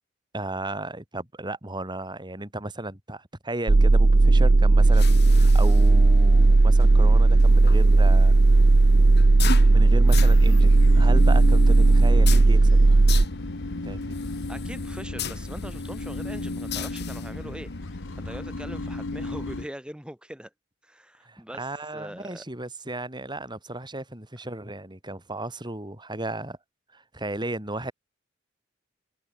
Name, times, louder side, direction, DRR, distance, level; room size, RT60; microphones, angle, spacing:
voice 1, 0.3-8.7 9.7-13.0 13.8-14.2 21.3-26.6 26.9-27.9, right 1 dB, 25° right, 5.2 m, -35 dB
sound 1, 3.7-13.3, right 2 dB, 45° right, 0.6 m, -16 dB
sound 2, 4.8-19.7, left 7 dB, 60° left, 7.9 m, -40 dB
sound 3, 10.1-19.7, left 2 dB, 80° left, 1.2 m, -34 dB
voice 2, 14.5-20.5 20.8-22.4, equal, 5° right, 4.1 m, -42 dB
head